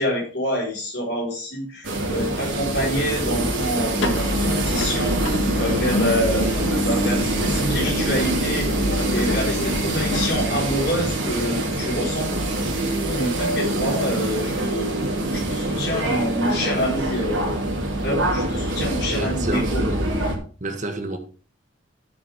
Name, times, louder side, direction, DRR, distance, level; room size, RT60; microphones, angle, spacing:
voice 1, 0.0-8.7 9.1-12.3 12.8-14.9 15.3-17.5 17.9-19.8, equal, 55° left, 4.5 m, -27 dB
sound 1, 1.8-20.4, right 1 dB, 80° right, 2.9 m, -25 dB
sound 2, 3.9-10.3, left 2 dB, 75° left, 1.3 m, -27 dB
voice 2, 19.1-20.2 20.6-21.2, right 2 dB, 40° right, 1.5 m, -29 dB
13.0 x 7.2 x 3.6 m
head